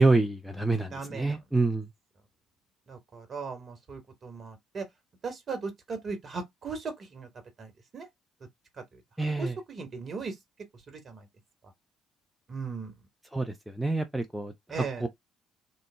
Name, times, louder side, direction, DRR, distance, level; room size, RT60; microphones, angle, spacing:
voice 1, 0.0-1.9 9.2-9.5 13.3-14.5 15.0-15.1, right 3 dB, 5° right, 0.6 m, -26 dB
voice 2, 0.9-1.4 2.9-4.9 5.2-7.3 7.6-8.1 8.9-9.0 9.4-10.3 10.9-11.3 12.5-12.9 14.7-15.0, right 4 dB, 40° right, 1.2 m, -38 dB
3.2 x 2.0 x 3.3 m
figure-of-eight pair, 45°, 0 cm